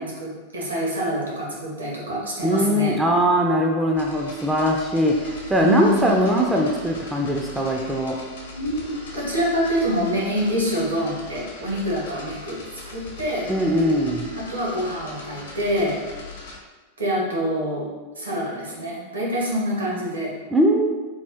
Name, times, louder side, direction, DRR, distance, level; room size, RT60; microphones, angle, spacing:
voice 1, 0.0-3.0 5.6-6.1 8.5-12.6 12.9-13.5 14.4-16.0 17.0-17.9 18.2-20.3, equal, 75° right, -4 dB, 1.0 m, -26 dB
voice 2, 2.4-8.2 13.5-14.3 20.5-21.0, equal, 10° right, 0 dB, 0.3 m, -21 dB
sound 1, 3.9-16.6, left 3 dB, 65° left, 0.7 m, -40 dB
3.3 x 2.4 x 3.5 m, 1.3 s
figure-of-eight pair, 90°, 0 cm